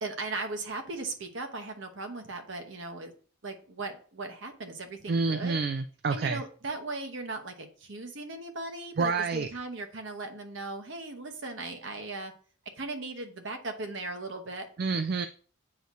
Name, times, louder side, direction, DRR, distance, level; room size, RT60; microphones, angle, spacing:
voice 1, 0.0-3.1 3.4-5.6 6.1-12.3 12.8-14.7, right 2 dB, 65° right, 6 dB, 1.0 m, -38 dB
voice 2, 5.1-6.4 9.0-9.5 14.8-15.3, right 4 dB, 50° right, 9 dB, 0.3 m, -28 dB
7.8 x 2.7 x 4.6 m, 0.42 s
head